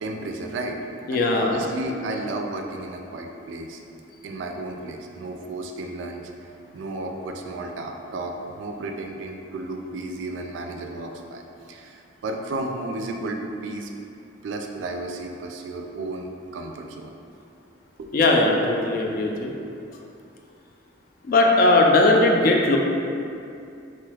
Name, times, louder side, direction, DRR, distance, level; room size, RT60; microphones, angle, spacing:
voice 1, 0.0-0.8 1.1-3.8 4.2-6.2 6.7-11.4 11.7-13.9 14.4-17.1 18.0-18.1, right 2 dB, 75° right, 3 dB, 0.3 m, -33 dB
voice 2, 1.1-1.6 18.1-19.5 21.2-22.8, left 2 dB, 45° left, 0 dB, 0.3 m, -19 dB
3.0 x 2.3 x 3.2 m, 2.6 s
head